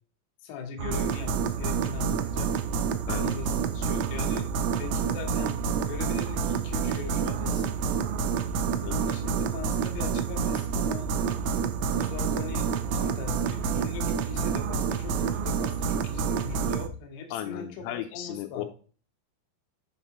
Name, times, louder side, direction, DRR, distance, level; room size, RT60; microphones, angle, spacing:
voice 1, 0.4-2.5 3.2-7.8 8.8-11.1 11.9-18.6, left 5 dB, 70° left, 3 dB, 2.7 m, -40 dB
sound 1, 0.8-16.9, right 6 dB, 80° right, 2.7 m, -28 dB
voice 2, 3.1-3.4 8.8-9.0 17.3-18.6, left 13 dB, 85° left, 5 dB, 3.1 m, -35 dB
7.2 x 5.3 x 2.9 m, 0.39 s
omnidirectional pair, 5.7 m